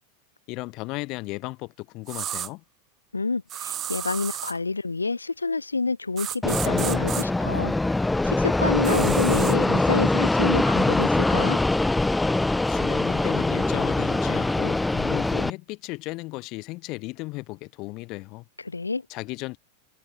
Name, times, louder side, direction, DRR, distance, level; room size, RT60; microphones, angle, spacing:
voice 1, 0.5-2.6 12.7-18.4 19.1-19.6, left 23 dB, 40° left, 5.4 m, -35 dB
sound 1, 2.1-2.5 3.5-4.6 6.2-7.2 8.8-9.6, right 11 dB, 30° right, 1.5 m, -33 dB
voice 2, 3.1-7.7 8.2-11.6 18.6-19.0, left 3 dB, 80° left, 0.6 m, -28 dB
Fixed-wing aircraft airplane, 6.4-15.5, left 2 dB, 5° left, 1.3 m, -23 dB
figure-of-eight pair, 90°, 0 cm